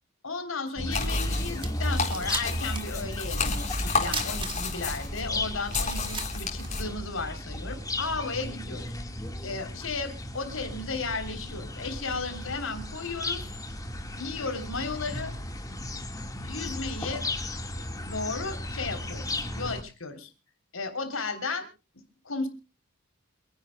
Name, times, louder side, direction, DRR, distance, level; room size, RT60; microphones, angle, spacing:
voice 1, 0.2-8.9 9.4-13.4 14.2-15.3 16.4-17.2 18.0-20.3 20.7-21.7 22.3-22.5, left 4 dB, 70° left, 7 dB, 3.5 m, -34 dB
sound 1, 0.7-19.8, left 1 dB, 15° left, 1.7 m, -35 dB
sound 2, 0.9-6.8, left 4 dB, 35° left, 4.2 m, -32 dB
sound 3, 1.6-3.0 3.2-3.3 4.1-4.9 5.4-5.5 5.7-7.2, right 5 dB, 25° right, 2.1 m, -37 dB
27.5 x 10.5 x 2.2 m, 0.31 s
head